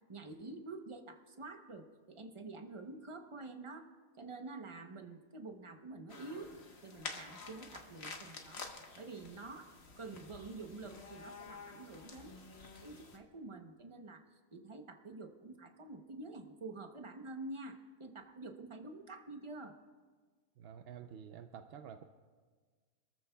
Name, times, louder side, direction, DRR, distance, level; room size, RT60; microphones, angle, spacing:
voice 1, 0.1-3.9 4.2-6.5 6.8-8.6 8.9-12.4 12.8-14.2 14.5-19.8, right 3 dB, 30° right, 5 dB, 0.7 m, -48 dB
sound 1, 6.1-13.2, left 4 dB, 50° left, 1.4 m, -50 dB
voice 2, 20.6-22.0, right 8 dB, 65° right, 8 dB, 0.6 m, -49 dB
26.5 x 14.0 x 2.3 m, 1.5 s
omnidirectional pair, 1.5 m